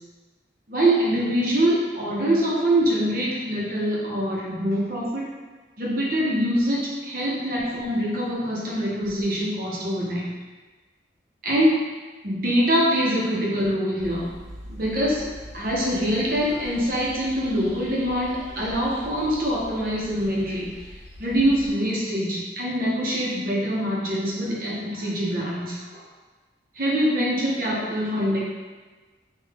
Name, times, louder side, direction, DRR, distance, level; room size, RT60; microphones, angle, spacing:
voice 1, 0.7-5.2 5.8-10.3 11.4-11.9 12.2-14.3 14.6-20.7 21.2-26.0 26.8-28.4, equal, 50° right, -5 dB, 0.8 m, -24 dB
sound 1, 14.0-21.7, equal, 90° right, 1.1 m, -43 dB
3.7 x 2.4 x 3.5 m, 1.3 s
head